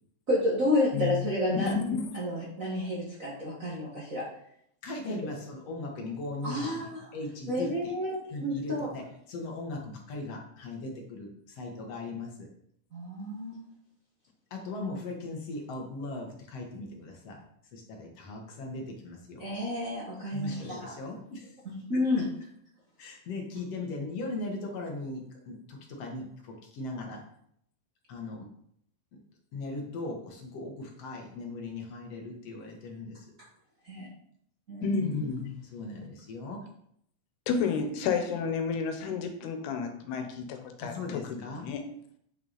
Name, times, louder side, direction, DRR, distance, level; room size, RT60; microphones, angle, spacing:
voice 1, 0.3-1.7 2.1-4.2 5.1-5.2 6.4-7.1 7.5-8.9 12.9-13.7 19.4-20.9 21.6-22.3 33.8-34.1 34.7-35.0, left 1 dB, 75° right, -5 dB, 0.7 m, -30 dB
voice 2, 0.9-2.1 34.8-35.6 37.5-41.8, left 5 dB, 85° left, 5 dB, 3.1 m, -31 dB
voice 3, 4.8-8.0 8.3-12.5 14.5-17.4 17.7-19.5 20.3-21.5 21.9-22.0 23.0-27.2 28.1-28.5 29.5-33.3 35.0-36.7 40.8-41.7, left 2 dB, 55° left, 1 dB, 1.8 m, -39 dB
8.9 x 6.3 x 4.1 m, 0.69 s
omnidirectional pair, 4.5 m